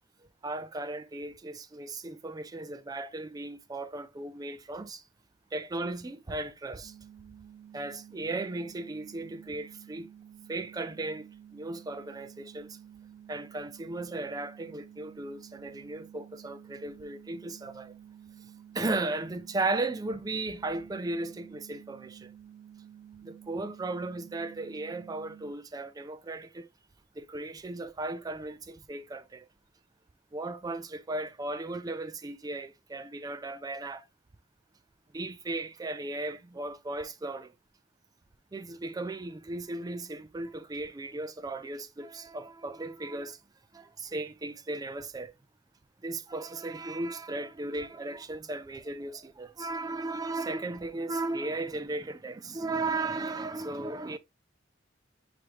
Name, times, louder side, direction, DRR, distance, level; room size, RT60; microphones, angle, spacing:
voice 1, 0.4-5.0 5.5-6.9 7.7-10.1 10.5-11.3 11.5-12.8 13.3-17.9 18.7-22.3 23.2-26.7 27.2-29.4 30.3-34.0 35.1-37.5 38.5-43.4 43.7-45.3 46.0-54.2, right 2 dB, 20° right, 0.4 m, -36 dB
sound 1, 6.8-25.5, right 9 dB, 60° right, 1.3 m, -52 dB
4.9 x 3.0 x 3.1 m
head